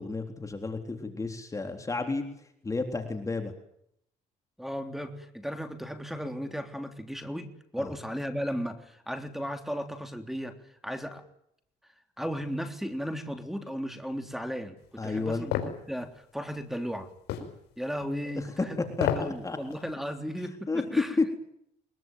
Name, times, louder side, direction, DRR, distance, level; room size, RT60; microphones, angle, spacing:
voice 1, 0.0-2.2 2.6-3.5 7.8-7.9 15.0-15.5 18.4-19.6 20.7-20.8 21.2-21.3, left 3 dB, 20° left, 5 dB, 3.6 m, -31 dB
voice 2, 4.6-10.5 10.8-11.2 12.2-15.6 15.9-17.1 17.8-18.9 19.1-21.1, equal, ahead, 7 dB, 3.4 m, -35 dB
sound 1, 15.5-15.8 17.3-17.5 18.9-19.3 19.7-19.8, left 10 dB, 85° left, 5.2 m, -28 dB
23.0 x 22.5 x 9.3 m, 0.71 s
cardioid pair, 110°, 17 cm